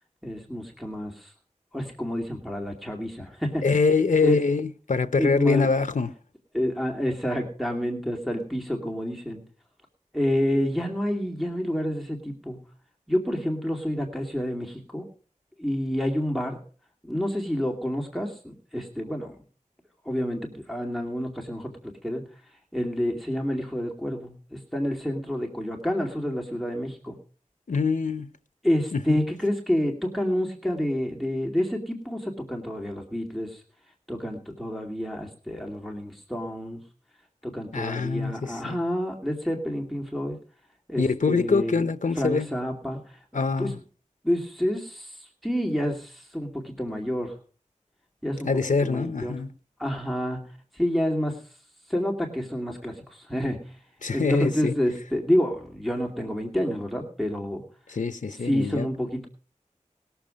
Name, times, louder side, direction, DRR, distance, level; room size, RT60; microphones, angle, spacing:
voice 1, 0.2-1.3 1.7-3.7 4.1-4.4 5.2-5.7 6.5-9.4 10.1-12.6 13.1-15.1 15.6-16.6 17.0-19.4 20.0-22.3 22.7-27.2 28.6-33.6 34.1-36.8 37.4-40.4 40.9-41.8 42.2-43.2 43.6-43.7 44.2-47.3 48.2-48.5 48.8-49.4 49.8-51.4 51.9-53.8 54.1-57.6 58.4-59.3, equal, ahead, 2.4 m, -28 dB
voice 2, 3.6-6.1 27.7-28.3 28.9-29.2 37.7-38.8 41.0-42.5 43.3-43.8 48.4-49.5 54.0-54.7 57.9-58.9, left 4 dB, 80° left, 0.7 m, -24 dB
20.0 x 7.1 x 5.1 m
wide cardioid pair, 60°, 13 cm